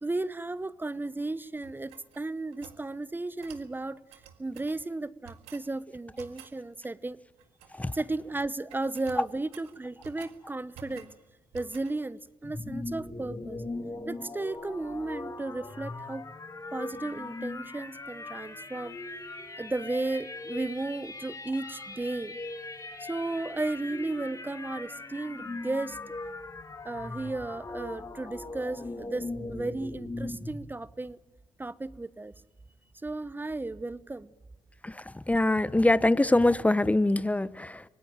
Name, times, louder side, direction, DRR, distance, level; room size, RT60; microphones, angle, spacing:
voice 1, 0.0-4.0 4.4-7.2 7.9-11.1 11.5-13.6 14.1-16.2 16.7-19.0 19.6-22.4 23.0-26.0 26.8-31.2 31.6-32.3 33.0-34.3, right 2 dB, 20° right, 17 dB, 0.9 m, -34 dB
sound 1, 1.6-2.8 3.4-3.7 4.1-4.8 5.2-5.7 6.2-6.6 7.4-8.0 8.2-8.4 8.7-10.4 10.7-11.2 11.5-12.0, right 9 dB, 85° right, 1.8 m, -51 dB
sound 2, 12.4-30.6, left 2 dB, 30° left, 2.9 m, -40 dB
voice 2, 34.8-37.8, left 2 dB, 15° left, 17 dB, 0.9 m, -24 dB
25.0 x 18.5 x 8.9 m, 1.0 s
supercardioid pair, 50°, 10 cm